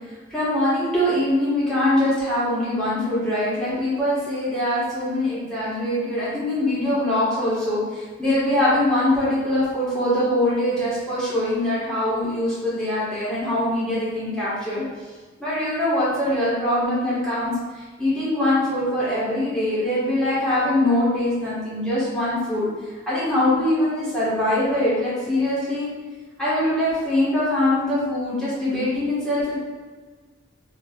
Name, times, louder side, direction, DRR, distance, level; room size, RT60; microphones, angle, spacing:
voice 1, 0.3-14.8 15.4-22.7 23.1-25.9 26.4-29.6, left 1 dB, 5° left, -10 dB, 1.3 m, -23 dB
3.3 x 3.1 x 2.3 m, 1.4 s
head